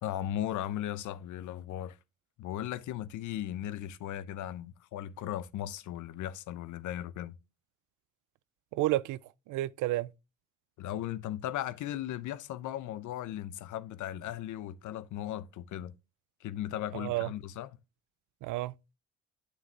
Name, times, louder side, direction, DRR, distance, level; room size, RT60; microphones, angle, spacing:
voice 1, 0.0-2.0 2.4-7.4 10.8-15.9 16.4-17.7, left 12 dB, 80° left, 0.7 m, -37 dB
voice 2, 8.7-9.2 9.5-10.1 16.9-17.3 18.4-18.7, right 17 dB, 90° right, 0.5 m, -30 dB
9.2 x 6.6 x 3.3 m
cardioid pair, 90°, 30 cm